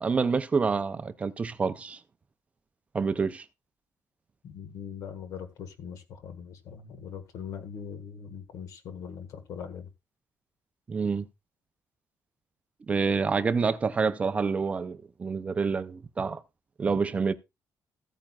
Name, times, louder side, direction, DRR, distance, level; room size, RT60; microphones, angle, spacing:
voice 1, 0.0-2.0 2.9-3.4 10.9-11.3 12.9-16.4 16.8-17.3, right 5 dB, 20° right, 0.4 m, -27 dB
voice 2, 4.4-9.9, left 7 dB, 70° left, 1.5 m, -41 dB
14.5 x 8.7 x 2.3 m
cardioid pair, 175°, 6 cm